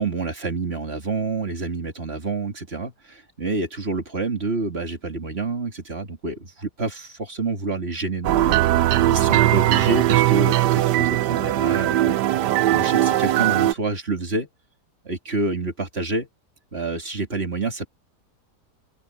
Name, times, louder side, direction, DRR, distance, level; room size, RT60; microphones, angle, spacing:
voice 1, 0.0-8.6 9.1-12.2 12.6-14.5 15.0-16.3 16.7-17.9, right 3 dB, 35° right, 3.0 m, -28 dB
sound 1, 8.2-13.7, right 14 dB, 85° right, 1.3 m, -19 dB
open air
omnidirectional pair, 1.8 m